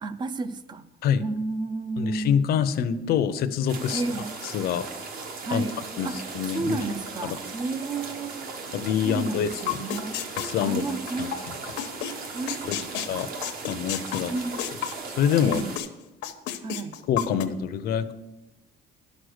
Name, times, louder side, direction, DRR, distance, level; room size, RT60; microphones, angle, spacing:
voice 1, 0.0-0.8 1.2-2.4 3.9-4.3 5.4-6.2 6.5-8.5 9.0-10.2 10.6-11.3 12.3-13.0 14.3-14.7 15.4-15.8 16.6-17.0, right 3 dB, 25° right, 14 dB, 0.5 m, -32 dB
voice 2, 2.0-4.0 4.4-4.9 5.5-5.6 6.0-6.1 6.3-6.8 7.2-7.3 8.7-9.8 10.4-10.9 11.2-11.3 13.1-13.3 13.7-14.3 15.2-15.6 17.1-18.1, left 8 dB, 55° left, 10 dB, 0.7 m, -25 dB
sound 1, 3.7-15.8, right 4 dB, 50° right, 1.3 m, -38 dB
sound 2, 9.7-11.4 11.8-12.1 12.5-15.9 16.2-17.4, left 11 dB, 90° left, 1.0 m, -31 dB
11.0 x 6.4 x 6.4 m, 1.0 s
cardioid pair, 170°, 18 cm